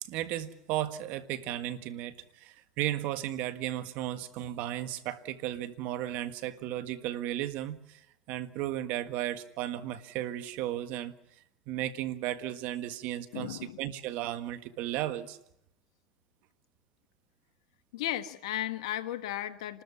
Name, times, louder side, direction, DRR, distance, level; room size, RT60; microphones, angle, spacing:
voice 1, 0.0-11.1 11.7-15.4, right 13 dB, 65° right, 1.6 m, -35 dB
voice 2, 13.3-13.8 17.9-19.8, left 13 dB, 85° left, 1.4 m, -35 dB
27.5 x 13.5 x 9.9 m
supercardioid pair, 90°, 3 cm